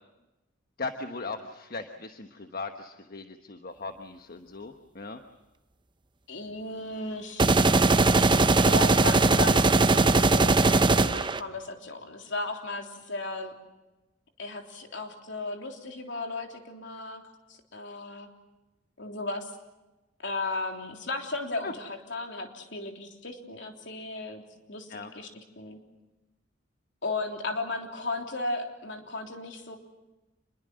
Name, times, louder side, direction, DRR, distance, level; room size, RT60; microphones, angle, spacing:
voice 1, 0.8-5.2 21.6-21.7 24.9-25.1, left 3 dB, 50° left, 6 dB, 1.2 m, -38 dB
voice 2, 6.3-7.6 8.6-13.5 14.4-17.2 17.5-18.3 19.0-19.5 20.2-24.4 24.7-25.8 27.0-29.8, left 2 dB, 65° left, 3 dB, 3.5 m, -35 dB
sound 1, 7.4-11.4, right 3 dB, 25° right, 0.8 m, -20 dB
27.0 x 22.0 x 7.7 m, 1.0 s
head